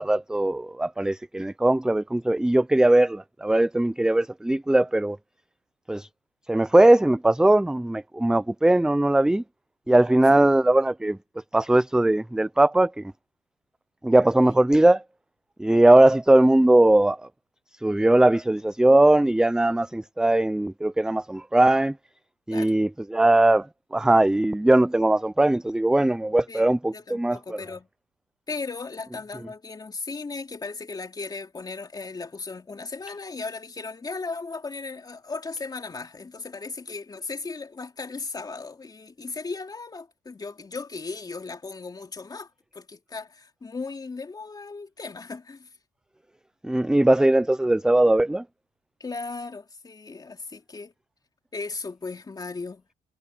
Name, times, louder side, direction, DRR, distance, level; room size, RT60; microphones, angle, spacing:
voice 1, 0.0-5.2 5.9-6.1 6.5-9.4 9.9-11.2 11.5-13.1 14.0-15.0 15.6-17.3 17.8-22.0 22.5-27.6 46.6-48.4, right 1 dB, 5° right, 0.6 m, -20 dB
voice 2, 26.9-27.9 28.5-45.7 49.0-50.9 51.5-52.8, left 4 dB, 25° left, 3.2 m, -36 dB
cardioid pair, 110°, 17 cm